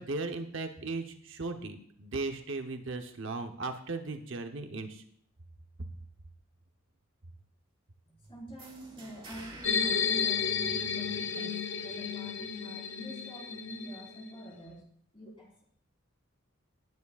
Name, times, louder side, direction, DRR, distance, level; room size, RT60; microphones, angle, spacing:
voice 1, 0.0-5.0, right 3 dB, 60° right, 6 dB, 0.9 m, -37 dB
voice 2, 8.1-14.8 15.1-15.6, right 1 dB, 25° left, -3 dB, 4.3 m, -45 dB
sound 1, 8.6-11.3, right 2 dB, 25° right, 1.8 m, -51 dB
sound 2, 9.6-14.4, left 6 dB, 60° left, 0.7 m, -32 dB
18.5 x 9.7 x 2.4 m, 0.63 s
head